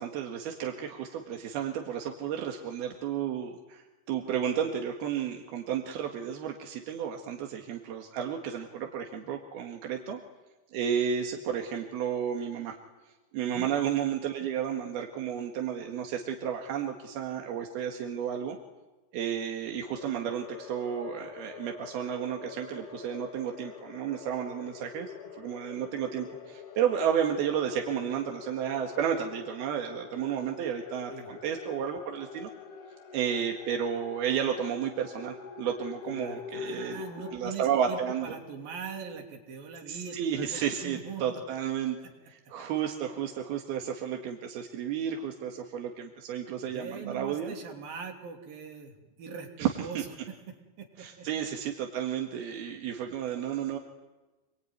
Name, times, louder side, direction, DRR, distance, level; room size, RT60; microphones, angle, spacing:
voice 1, 0.0-10.2 10.7-12.8 13.3-18.6 19.1-32.5 33.1-37.0 37.3-38.3 39.9-42.0 42.3-47.5 49.6-50.0 51.0-53.8, right 8 dB, 85° right, 2 dB, 3.8 m, -32 dB
sound 1, 19.9-37.4, left 6 dB, 85° left, 4.8 m, -45 dB
voice 2, 36.1-41.4 42.0-42.1 46.7-50.0 50.3-51.3, right 6 dB, 70° right, 3 dB, 5.0 m, -42 dB
27.0 x 23.5 x 9.5 m, 1.1 s
omnidirectional pair, 4.3 m